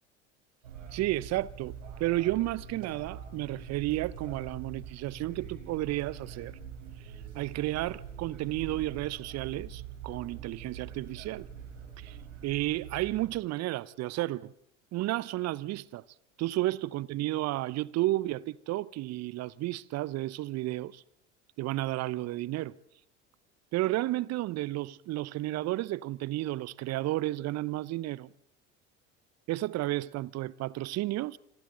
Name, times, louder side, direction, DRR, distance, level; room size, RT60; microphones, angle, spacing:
sound 1, 0.6-13.3, right 7 dB, 80° right, 4.8 m, -44 dB
voice 1, 0.9-1.7 2.0-6.6 7.3-11.5 12.0-12.2 12.4-14.5 14.9-16.0 16.4-21.0 21.6-22.8 23.7-28.3 29.5-31.4, right 17 dB, 45° right, 0.9 m, -32 dB
27.0 x 26.5 x 3.9 m
figure-of-eight pair, 70°, 37 cm